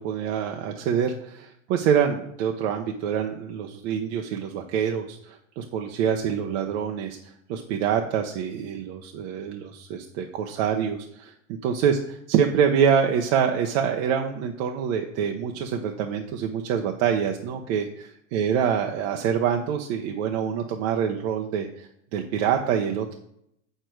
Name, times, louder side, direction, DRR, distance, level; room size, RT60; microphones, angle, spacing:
voice 1, 0.0-11.3 11.6-12.0 12.3-23.2, right 8 dB, 55° right, 3 dB, 1.0 m, -26 dB
7.6 x 6.8 x 4.6 m, 0.74 s
supercardioid pair, 125°, 42 cm